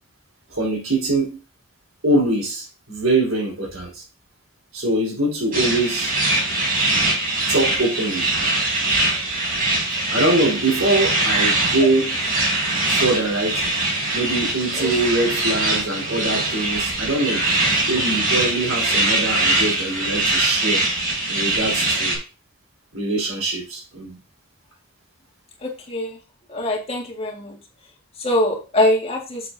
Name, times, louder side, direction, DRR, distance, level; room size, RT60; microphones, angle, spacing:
voice 1, 0.5-1.4 2.0-4.0 4.7-6.1 7.5-8.3 10.1-12.2 12.9-13.6 14.1-17.4 17.9-20.8 21.3-22.2 22.9-24.2, right 2 dB, 90° right, 4.2 m, -23 dB
sound 1, 5.5-22.2, right 2 dB, 45° right, 3.8 m, -22 dB
voice 2, 26.5-27.5 28.2-29.4, left 1 dB, 30° left, 2.0 m, -22 dB
7.7 x 7.1 x 2.8 m
head